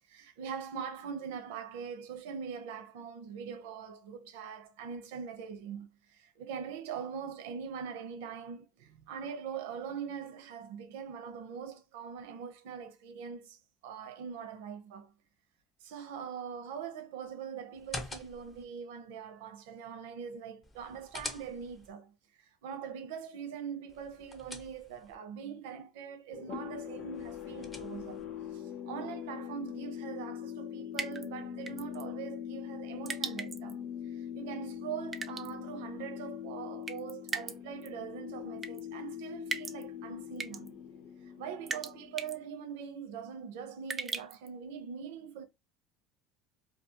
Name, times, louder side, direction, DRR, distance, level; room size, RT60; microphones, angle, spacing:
voice 1, 0.1-13.6 13.8-15.1 15.8-22.1 22.4-28.2 28.5-40.8 41.2-45.4, right 7 dB, 90° right, 0.6 m, -42 dB
sound 1, 17.7-18.6 20.6-21.9 23.9-25.2 27.1-28.3, left 2 dB, 20° left, 0.7 m, -45 dB
sound 2, 26.3-42.6, left 9 dB, 55° left, 0.5 m, -42 dB
sound 3, 30.9-31.3 31.7-32.0 33.1-33.7 35.1-35.5 36.9-37.6 37.8-37.9 38.6-38.8 39.5-39.8 40.4-40.7 41.7-41.9 42.2-42.4 43.9-44.5, right 5 dB, 25° right, 0.3 m, -37 dB
2.4 x 2.3 x 2.7 m
supercardioid pair, 125°, 0 cm